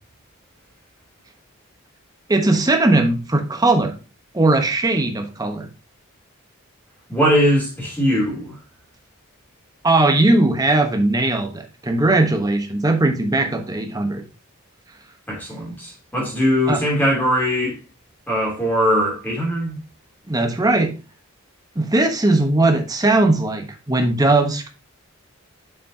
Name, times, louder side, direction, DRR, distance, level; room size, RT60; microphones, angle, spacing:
voice 1, 2.3-3.9 4.3-5.7 9.8-14.2 16.7-16.8 20.3-20.9 21.8-24.7, right 2 dB, 15° right, 1.0 m, -19 dB
voice 2, 7.1-8.5 15.3-17.8 18.3-19.8, equal, 10° left, 3.0 m, -20 dB
7.3 x 5.9 x 2.8 m
head